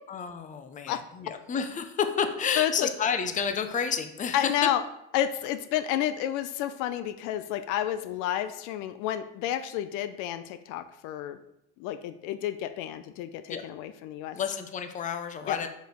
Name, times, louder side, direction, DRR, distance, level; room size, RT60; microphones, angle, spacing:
voice 1, 0.1-4.7 13.5-13.6 14.3-15.7, left 7 dB, 25° left, 8 dB, 0.6 m, -30 dB
voice 2, 2.6-2.9 4.3-4.8 5.1-11.4 11.8-14.4 15.5-15.6, left 11 dB, 75° left, 11 dB, 0.5 m, -30 dB
5.1 x 4.4 x 4.6 m, 0.82 s
cardioid pair, 115°, 31 cm